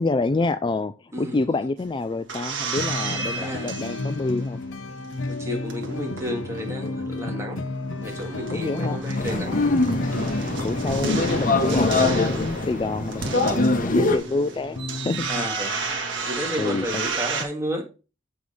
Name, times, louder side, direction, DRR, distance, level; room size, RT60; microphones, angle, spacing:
voice 1, 0.0-4.6 8.5-9.0 9.7-10.1 10.6-15.3 16.6-17.0, left 3 dB, 25° left, 0.3 m, -28 dB
sound 1, 1.8-4.6 5.0-7.1 7.4-7.5 7.7-17.4, right 3 dB, 70° right, 2.2 m, -32 dB
sound 2, 2.8-12.4 14.8-15.5, left 2 dB, 90° left, 0.8 m, -32 dB
voice 2, 3.2-3.8 5.3-7.6 8.0-9.6 10.1-10.3 15.3-15.8 16.3-17.8, equal, 15° right, 2.2 m, -32 dB
sound 3, 9.2-14.2, left 2 dB, 45° left, 1.0 m, -23 dB
7.9 x 4.8 x 5.4 m
head